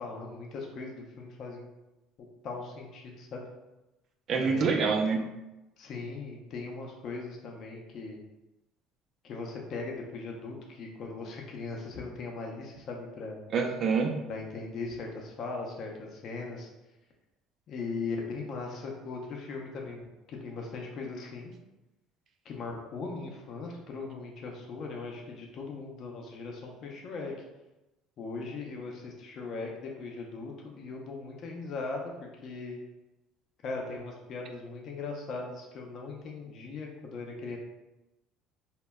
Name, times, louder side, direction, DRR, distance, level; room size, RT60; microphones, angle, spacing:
voice 1, 0.0-1.7 2.4-3.4 4.3-4.9 5.8-8.2 9.2-13.4 14.3-16.7 17.7-21.5 22.4-27.3 28.2-32.8 33.6-37.6, left 3 dB, 55° left, 0 dB, 0.5 m, -39 dB
voice 2, 4.3-5.2 13.5-14.1, right 5 dB, 55° right, 3 dB, 0.4 m, -26 dB
2.1 x 2.0 x 3.4 m, 1.0 s
hypercardioid pair, 75°, 0 cm